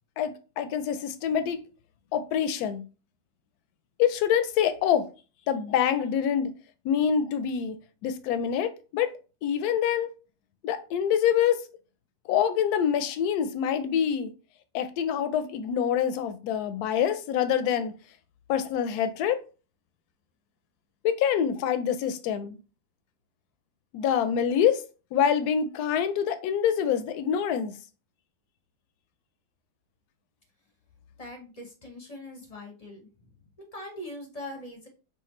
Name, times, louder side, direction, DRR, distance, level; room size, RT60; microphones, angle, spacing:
voice 1, 0.2-1.6 2.1-2.8 4.0-5.1 5.5-6.5 6.8-7.8 8.0-9.1 9.4-10.1 10.6-11.6 12.3-14.3 14.7-17.9 18.5-19.4 21.0-22.6 23.9-24.8 25.1-27.7, left 8 dB, 80° left, 1.1 m, -26 dB
voice 2, 31.2-33.0 33.7-34.9, left 1 dB, 35° left, 0.6 m, -41 dB
5.7 x 2.5 x 3.0 m
omnidirectional pair, 1.7 m